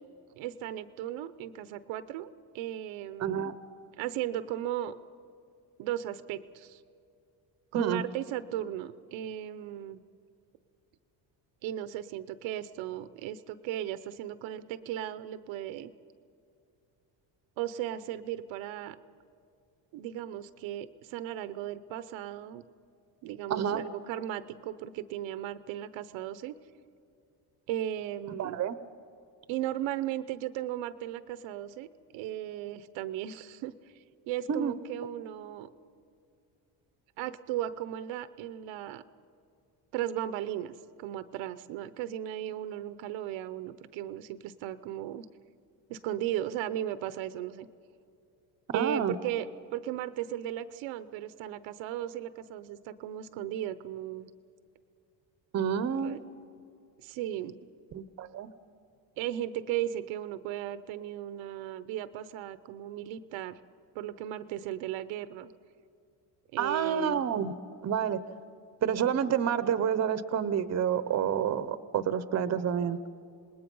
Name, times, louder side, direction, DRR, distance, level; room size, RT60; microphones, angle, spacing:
voice 1, 0.4-3.5 4.0-4.9 5.8-6.8 7.7-10.0 11.6-15.9 17.6-19.0 19.9-22.6 23.2-26.5 27.7-28.6 29.5-31.9 32.1-33.7 34.3-35.7 37.2-39.0 39.9-45.3 45.9-47.7 48.7-54.3 56.0-56.2 57.0-57.6 59.2-63.6 63.9-65.5 66.5-67.2, right 12 dB, 90° right, 13 dB, 0.8 m, -36 dB
voice 2, 3.2-3.5 7.7-8.0 23.5-23.8 28.4-28.7 34.5-34.7 48.7-49.2 55.5-56.2 57.9-58.5 66.6-67.5 67.8-68.2 68.8-73.0, right 8 dB, 35° right, 13 dB, 0.8 m, -29 dB
27.0 x 20.0 x 5.4 m, 2.5 s
cardioid pair, 130°, 45 cm